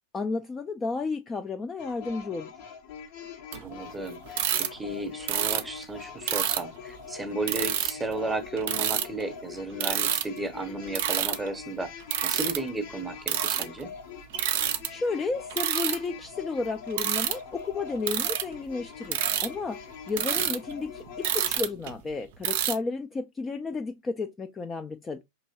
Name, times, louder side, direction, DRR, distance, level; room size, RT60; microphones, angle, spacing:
voice 1, 0.1-2.5 14.5-25.2, left 4 dB, 15° left, 0.4 m, -32 dB
sound 1, 1.8-21.6, left 7 dB, 45° left, 0.7 m, -44 dB
sound 2, 3.5-3.6 4.3-4.7 5.3-5.6 6.3-6.6 7.5-8.1 8.6-9.2 9.8-10.2 10.9-11.5 12.0-12.6 13.3-13.8 14.3-14.9 15.5-16.0 16.9-17.3 18.1-18.5 19.0-19.5 20.1-22.1 22.4-22.7, right 10 dB, 50° right, 0.5 m, -27 dB
voice 2, 3.6-11.9 12.2-13.9 20.2-20.5, right 2 dB, 10° right, 0.8 m, -34 dB
4.9 x 3.0 x 2.7 m
figure-of-eight pair, 90°, 0 cm